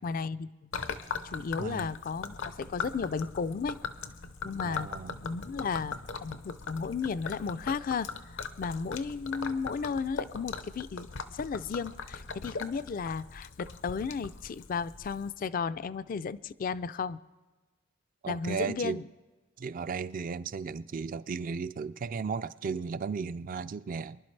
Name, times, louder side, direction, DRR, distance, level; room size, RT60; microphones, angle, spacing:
voice 1, 0.0-0.7 1.2-3.8 4.4-4.9 5.2-17.2 18.3-19.0, left 5 dB, 45° left, 0.4 m, -34 dB
Gurgling / Liquid, 0.7-15.3, left 5 dB, 80° left, 0.8 m, -40 dB
voice 2, 1.6-1.9 4.6-5.1 18.2-19.0 19.6-24.2, right 5 dB, 45° right, 0.4 m, -35 dB
24.0 x 11.5 x 3.2 m
head